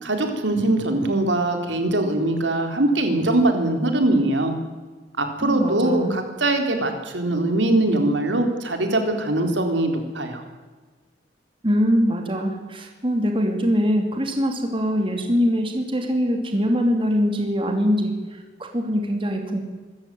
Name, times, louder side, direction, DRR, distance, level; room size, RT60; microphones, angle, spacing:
voice 1, 0.0-4.5 5.2-10.4, right 2 dB, 75° right, 5 dB, 3.7 m, -22 dB
voice 2, 5.4-6.2 11.6-19.6, equal, 30° right, 4 dB, 2.7 m, -23 dB
25.0 x 14.0 x 9.3 m, 1.3 s
head